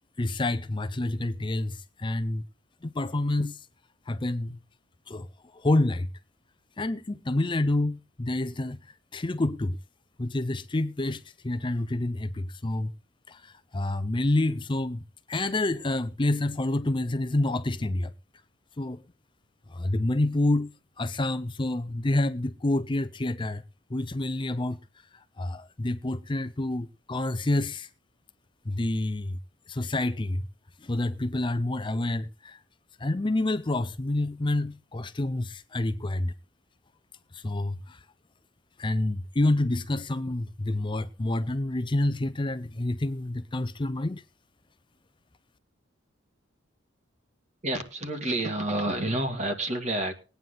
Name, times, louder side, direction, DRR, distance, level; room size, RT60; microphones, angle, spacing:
voice 1, 0.2-2.4 2.8-3.7 4.1-4.6 5.1-6.1 6.8-9.8 10.2-12.9 13.3-15.0 15.3-18.1 18.8-19.0 19.7-20.7 21.0-23.6 23.9-24.8 25.1-27.9 28.7-29.4 29.7-30.5 30.8-32.6 33.0-36.3 37.3-38.1 38.8-44.2, left 2 dB, 25° left, 0.6 m, -28 dB
voice 2, 47.6-50.1, right 1 dB, 35° right, 2.2 m, -29 dB
20.5 x 9.3 x 3.8 m
head